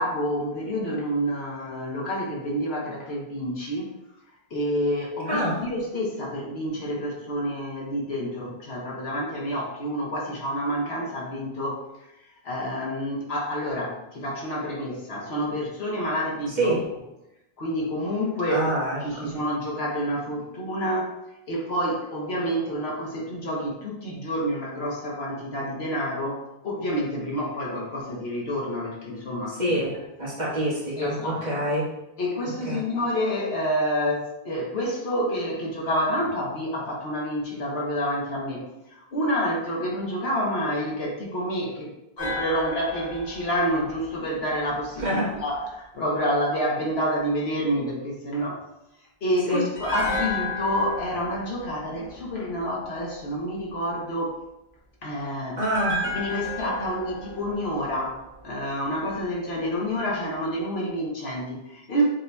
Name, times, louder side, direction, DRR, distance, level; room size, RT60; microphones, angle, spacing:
voice 1, 0.0-3.9 4.5-12.1 12.4-16.8 17.6-18.6 19.0-21.2 21.5-29.8 31.0-31.5 32.2-41.9 42.2-48.6 49.2-54.3 55.0-55.6 56.0-62.0, equal, 70° left, -2 dB, 1.2 m, -28 dB
voice 2, 5.3-5.6 16.6-16.8 18.5-19.3 29.5-31.9 32.4-32.8 45.0-45.3 49.5-49.6 55.6-56.1, right 1 dB, 45° right, -7 dB, 1.5 m, -26 dB
sound 1, 42.2-45.3 49.7-53.0 55.6-58.8 59.1-59.2, left 1 dB, 45° left, 1.4 m, -34 dB
7.2 x 2.8 x 2.2 m, 0.90 s
omnidirectional pair, 1.1 m